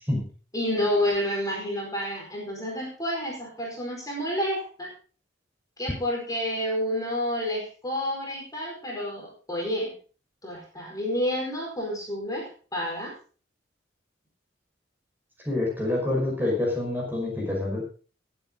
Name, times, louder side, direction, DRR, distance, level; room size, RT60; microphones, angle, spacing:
voice 1, 0.5-4.9 5.8-9.9 10.4-13.1, left 1 dB, 20° left, -2 dB, 4.7 m, -29 dB
voice 2, 15.5-17.8, left 2 dB, 10° right, -2 dB, 5.2 m, -27 dB
20.0 x 8.4 x 3.8 m, 0.38 s
head